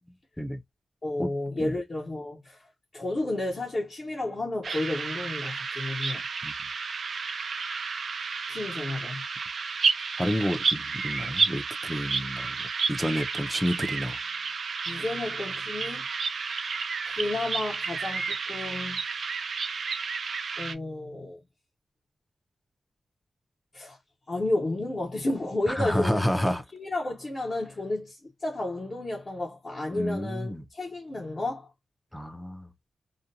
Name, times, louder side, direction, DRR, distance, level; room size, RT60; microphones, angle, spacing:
voice 1, 1.0-2.7 2.9-6.2 8.5-9.2 14.9-16.1 17.1-19.0 20.6-21.4 23.7-24.0 24.3-26.2 26.7-31.7, left 2 dB, 35° left, 0.9 m, -32 dB
sound 1, 4.6-20.7, right 5 dB, 60° right, 0.3 m, -31 dB
voice 2, 10.2-12.6 12.9-14.2 25.7-26.6 29.9-30.6 32.1-32.7, equal, 5° left, 0.5 m, -29 dB
2.5 x 2.2 x 2.7 m
wide cardioid pair, 150°, 0 cm